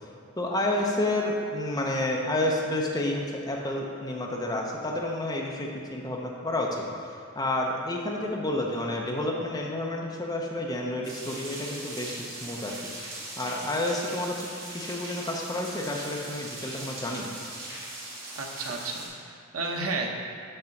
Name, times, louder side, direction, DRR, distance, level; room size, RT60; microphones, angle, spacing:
voice 1, 0.4-6.8 7.3-17.3, left 1 dB, 20° left, -1 dB, 0.6 m, -30 dB
sound 1, 11.0-19.1, right 2 dB, 60° right, 1.6 m, -40 dB
voice 2, 18.4-20.1, right 3 dB, 90° right, 1 dB, 0.8 m, -32 dB
5.6 x 4.7 x 5.2 m, 2.4 s
head